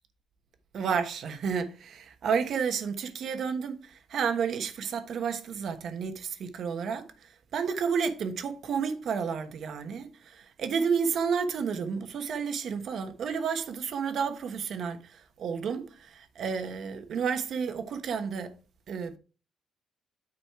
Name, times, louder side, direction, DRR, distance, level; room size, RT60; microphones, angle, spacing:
voice 1, 0.7-18.5 18.9-19.2, right 6 dB, 65° right, 1.2 m, -31 dB
9.7 x 4.2 x 4.7 m
cardioid pair, 90°, 0 cm